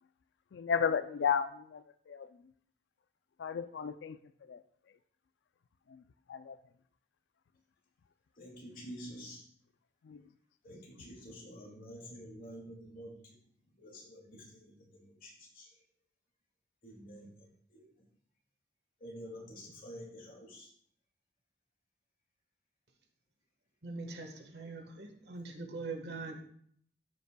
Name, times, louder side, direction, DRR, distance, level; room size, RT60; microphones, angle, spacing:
voice 1, 0.5-2.3 3.4-4.2 4.5-4.6 5.9-6.0 6.3-6.6 10.0-10.2, left 7 dB, 85° left, 12 dB, 0.4 m, -33 dB
voice 2, 8.4-9.4 10.6-13.4 13.8-15.7 16.8-17.8 19.0-20.7, equal, 50° left, -2 dB, 2.3 m, -49 dB
voice 3, 23.8-26.4, right 3 dB, 70° right, 3 dB, 1.4 m, -42 dB
15.0 x 5.3 x 2.2 m, 0.63 s
head